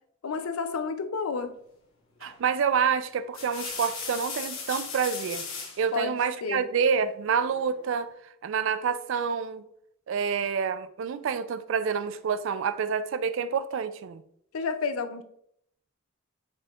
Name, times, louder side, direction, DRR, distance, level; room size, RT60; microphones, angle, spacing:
voice 1, 0.2-1.5 5.9-6.1 6.4-6.7 14.5-15.2, left 5 dB, 80° left, 0.5 m, -30 dB
sound 1, 2.2-2.5 3.1-5.8 7.3-8.0, left 5 dB, 65° left, 1.1 m, -37 dB
voice 2, 2.2-5.4 5.8-8.1 8.4-9.6 10.1-14.2, right 6 dB, 60° right, 0.3 m, -28 dB
4.9 x 4.3 x 2.4 m
head